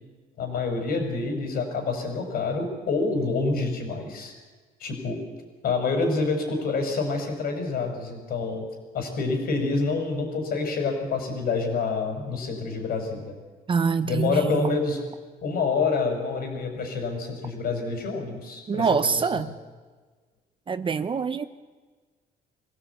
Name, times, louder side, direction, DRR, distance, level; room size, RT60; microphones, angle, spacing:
voice 1, 0.4-4.3 4.8-5.2 5.6-8.6 8.9-13.4 14.0-15.0 15.4-19.5, left 4 dB, 60° left, 4 dB, 5.6 m, -27 dB
voice 2, 13.7-14.8 18.7-19.5 20.7-21.5, right 5 dB, 30° right, 11 dB, 0.9 m, -25 dB
24.5 x 16.0 x 8.3 m, 1.4 s
cardioid pair, 110°, 17 cm